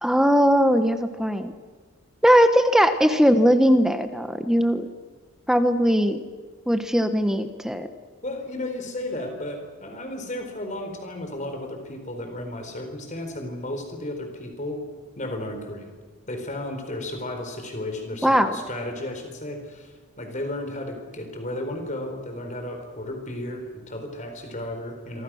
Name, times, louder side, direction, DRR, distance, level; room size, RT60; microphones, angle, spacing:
voice 1, 0.0-1.5 2.2-4.9 5.5-6.2 6.7-7.9 18.2-18.5, equal, ahead, 9 dB, 1.0 m, -19 dB
voice 2, 8.2-14.8 15.2-15.9 16.3-25.2, left 1 dB, 35° left, 5 dB, 4.5 m, -33 dB
27.0 x 25.5 x 6.4 m, 1.4 s
head